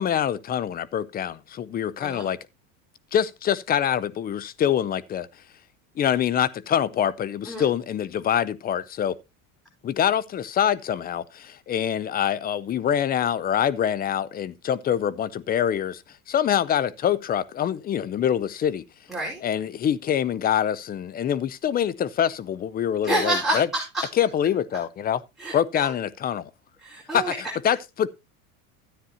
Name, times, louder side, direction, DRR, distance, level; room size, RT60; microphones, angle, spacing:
voice 1, 0.0-2.4 3.1-5.3 6.0-9.2 9.8-16.0 16.3-18.8 19.4-23.7 24.1-25.2 25.5-26.5 27.1-28.1, left 9 dB, 20° left, 0.5 m, -25 dB
voice 2, 19.1-19.4 23.0-24.0 25.4-25.9 26.8-27.4, right 1 dB, ahead, 4.7 m, -28 dB
13.0 x 9.2 x 2.8 m
supercardioid pair, 120°, 41 cm